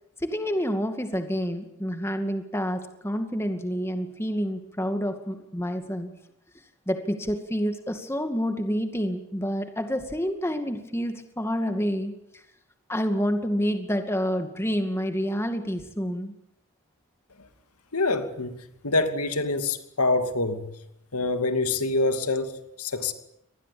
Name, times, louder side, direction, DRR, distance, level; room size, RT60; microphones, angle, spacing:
voice 1, 0.2-6.1 6.9-12.4 12.9-16.3, equal, 10° left, 2.2 m, -28 dB
voice 2, 17.9-20.7 21.1-23.1, left 3 dB, 85° left, 2.6 m, -26 dB
25.0 x 19.5 x 8.6 m
head